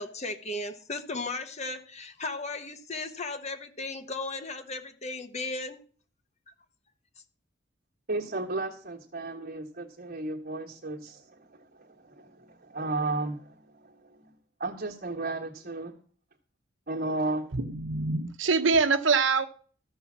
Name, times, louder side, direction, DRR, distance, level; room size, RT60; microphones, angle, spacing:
voice 1, 0.0-5.8, left 2 dB, 35° left, 1.1 m, -36 dB
voice 2, 8.1-14.3 14.6-15.9 16.9-17.5, right 2 dB, 55° right, 1.5 m, -34 dB
voice 3, 17.5-19.5, right 4 dB, 80° right, 0.9 m, -24 dB
13.5 x 5.6 x 7.2 m
head